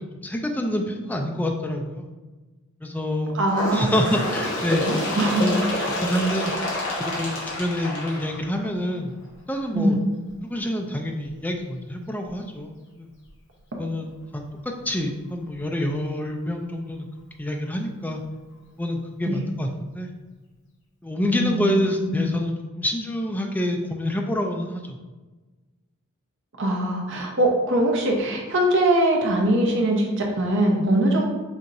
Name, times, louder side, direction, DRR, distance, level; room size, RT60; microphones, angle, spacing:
voice 1, 0.0-2.1 2.8-3.4 3.7-4.9 5.4-5.6 6.0-6.5 7.0-9.2 9.5-10.0 10.4-13.1 13.8-17.1 17.4-18.2 18.8-20.1 21.0-25.0, left 1 dB, 5° left, 2 dB, 0.3 m, -27 dB
voice 2, 3.3-3.9 4.7-5.5 6.2-6.3 9.7-10.0 19.2-19.5 21.2-22.2 26.6-31.2, right 1 dB, 55° right, 0 dB, 0.8 m, -22 dB
Bird, 3.5-8.9 9.8-9.9 10.3-10.4 11.3-11.4 12.3-12.4 13.3-13.4, left 1 dB, 55° left, 1.1 m, -28 dB
5.2 x 2.8 x 2.5 m, 1.2 s
head